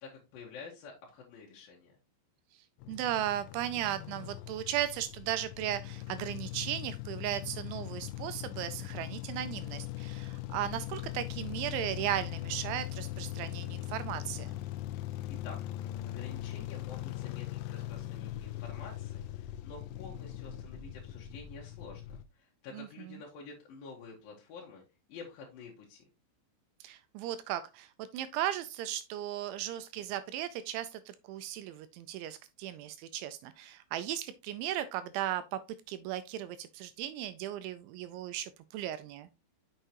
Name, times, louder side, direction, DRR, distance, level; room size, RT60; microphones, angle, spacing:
voice 1, 0.0-2.0 15.3-15.6 16.1-24.8 25.1-26.0, left 4 dB, 65° left, 2.3 m, -49 dB
sound 1, 2.8-22.2, left 14 dB, 85° left, 2.6 m, -40 dB
voice 2, 2.9-14.6 22.7-22.9 26.8-35.6 35.9-39.3, right 12 dB, 85° right, 2.6 m, -36 dB
6.6 x 6.6 x 2.9 m
omnidirectional pair, 5.8 m